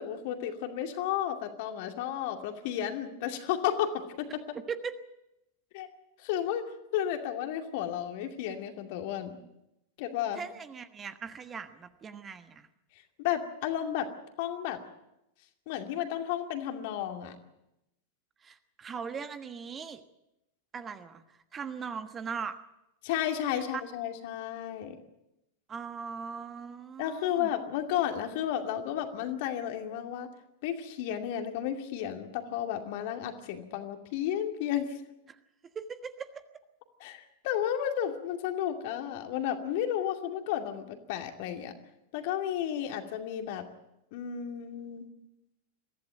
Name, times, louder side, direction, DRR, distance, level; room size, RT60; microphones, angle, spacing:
voice 1, 0.0-4.4 5.7-5.9 6.2-6.6 6.9-9.4 10.0-10.4 13.2-14.1 14.4-14.8 15.7-17.4 23.0-25.0 27.0-30.3 30.6-35.0 37.0-41.7 42.1-43.6 44.1-45.1, left 10 dB, 50° left, 5 dB, 2.4 m, -32 dB
voice 2, 4.5-5.0 10.3-12.7 18.4-20.0 20.7-22.6 23.5-23.6 25.7-27.5 35.3-35.4 35.7-36.4, right 6 dB, 20° right, 10 dB, 1.3 m, -40 dB
23.0 x 15.0 x 9.1 m, 0.89 s
figure-of-eight pair, 90°, 0 cm